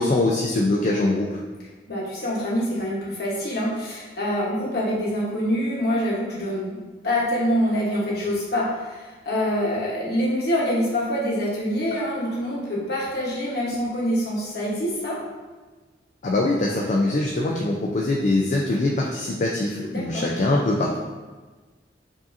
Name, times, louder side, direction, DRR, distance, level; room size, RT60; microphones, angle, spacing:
voice 1, 0.0-1.4 16.2-21.0, left 2 dB, 40° left, -2 dB, 0.3 m, -23 dB
voice 2, 1.9-6.8 7.0-15.2 19.9-20.2, equal, 60° left, -5 dB, 1.1 m, -25 dB
4.8 x 2.7 x 2.6 m, 1.3 s
head